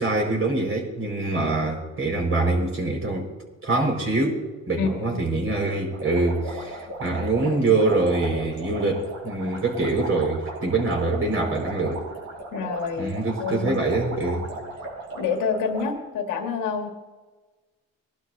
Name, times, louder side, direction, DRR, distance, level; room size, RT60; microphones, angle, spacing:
voice 1, 0.0-3.3 3.6-4.4 4.7-12.0 13.0-14.4, right 2 dB, 45° right, -1 dB, 5.0 m, -24 dB
voice 2, 4.8-5.2 7.4-7.7 12.5-13.1 13.4-13.8 15.1-16.9, left 5 dB, 85° left, 3 dB, 1.8 m, -28 dB
sound 1, 5.9-15.9, right 2 dB, 75° right, 5.2 m, -37 dB
22.5 x 12.0 x 2.7 m, 1.3 s
cardioid pair, 90°, 30 cm